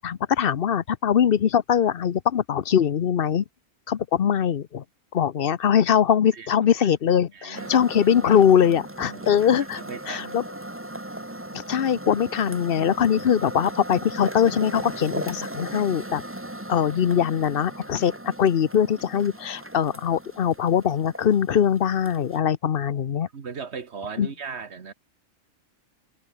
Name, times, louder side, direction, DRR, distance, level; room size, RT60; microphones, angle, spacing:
voice 1, 0.0-3.4 3.9-4.8 5.1-9.8 10.1-10.4 11.5-16.2 16.7-23.3 24.2-24.3, left 8 dB, 50° left, 0.9 m, -22 dB
voice 2, 6.3-6.9 7.3-7.7 9.1-10.4 23.3-24.9, right 5 dB, 55° right, 1.6 m, -38 dB
sound 1, 7.5-22.4, right 1 dB, 10° right, 1.7 m, -38 dB
omnidirectional pair, 1.4 m